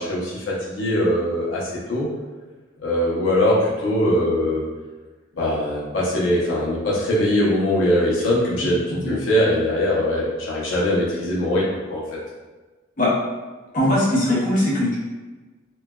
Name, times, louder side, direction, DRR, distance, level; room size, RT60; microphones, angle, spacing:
voice 1, 0.0-2.1 2.8-4.6 5.4-11.6 11.9-12.0, left 1 dB, 80° left, -6 dB, 0.7 m, -21 dB
voice 2, 13.7-15.0, left 1 dB, 45° left, -7 dB, 0.7 m, -20 dB
3.1 x 2.2 x 2.2 m, 1.3 s
head